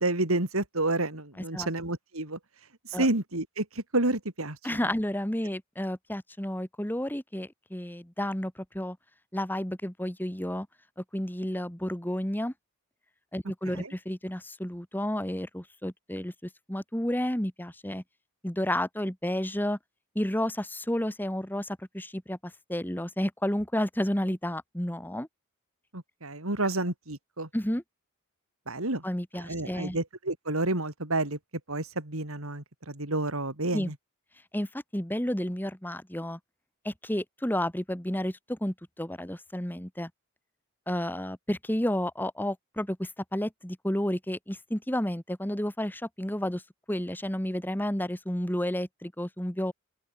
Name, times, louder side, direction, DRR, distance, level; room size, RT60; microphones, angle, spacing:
voice 1, 0.0-2.4 2.8-4.8 13.7-13.9 25.9-27.5 28.7-29.0 29.5-31.4 31.7-33.9, right 2 dB, 75° right, 3.7 m, -30 dB
voice 2, 1.4-1.7 2.9-3.1 4.6-9.0 9.3-10.7 11.1-12.5 13.3-18.0 18.4-19.8 20.1-25.3 27.5-27.8 29.0-30.0 33.7-33.9 34.5-36.4 36.8-40.1 40.9-46.6 46.9-49.7, left 1 dB, 10° left, 1.6 m, -31 dB
open air
head